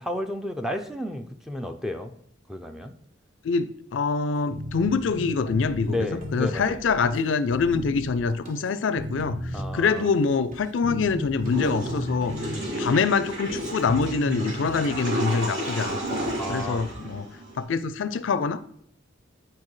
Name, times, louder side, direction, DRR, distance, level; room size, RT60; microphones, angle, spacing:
voice 1, 0.0-2.1 2.5-2.9 5.9-6.8 9.5-10.1 12.5-13.1 16.4-16.8, left 1 dB, ahead, 0.5 m, -32 dB
voice 2, 3.4-6.0 6.3-9.4 9.7-12.4 12.8-17.2 17.6-18.7, left 5 dB, 70° left, 0.4 m, -25 dB
sound 1, 4.5-15.0, equal, 45° right, 1.0 m, -36 dB
Water / Toilet flush, 11.4-17.6, equal, 70° right, 2.7 m, -32 dB
9.6 x 4.6 x 3.2 m
head